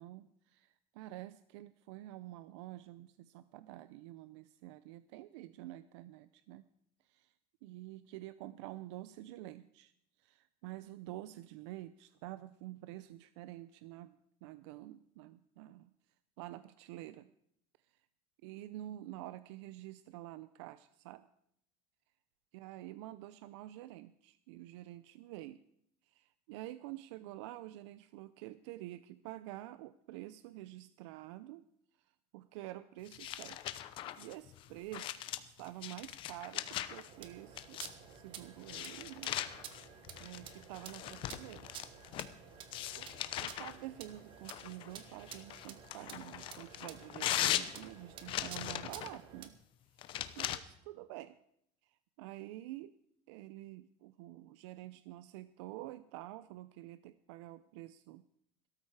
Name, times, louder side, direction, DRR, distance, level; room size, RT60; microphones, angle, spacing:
voice 1, 0.0-6.6 7.0-7.3 7.6-9.9 10.2-15.9 16.4-17.3 18.4-21.3 22.5-25.6 26.1-31.6 32.3-33.6 34.2-37.8 38.1-39.3 40.2-41.7 43.0-43.1 43.4-49.6 50.4-51.4 51.8-52.9 53.3-58.2, right 15 dB, 75° right, 14 dB, 0.6 m, -48 dB
sound 1, 33.1-37.1 37.6-38.1 38.6-42.3 42.7-43.8 44.4-49.2 50.0-50.6, left 12 dB, 35° left, 0.8 m, -40 dB
sound 2, 37.1-49.5, right 8 dB, 35° right, 1.3 m, -52 dB
17.5 x 13.0 x 4.8 m, 0.72 s
cardioid pair, 170°, 15 cm